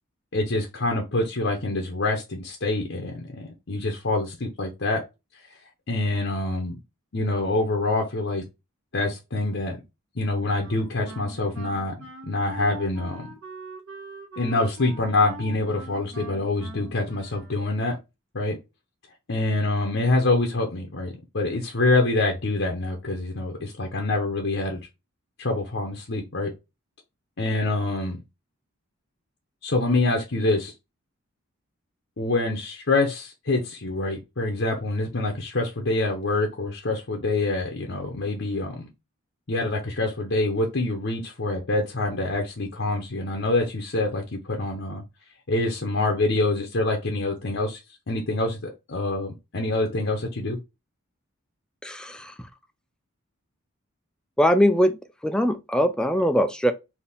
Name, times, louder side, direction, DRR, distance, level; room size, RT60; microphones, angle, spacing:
voice 1, 0.3-5.0 5.9-6.8 7.1-8.4 8.9-9.8 10.2-11.9 12.2-13.3 14.4-18.0 18.3-18.6 19.3-24.8 25.4-26.5 27.4-28.2 29.6-30.7 32.2-38.9 39.5-45.0 45.5-47.8 48.1-50.6, left 2 dB, 55° left, 0.8 m, -26 dB
Wind instrument woodwind instrument, 10.6-18.0, right 2 dB, 60° right, 1.9 m, -42 dB
voice 2, 51.8-52.3 54.4-55.0 55.2-56.7, equal, 5° left, 0.4 m, -21 dB
4.2 x 2.8 x 3.5 m
head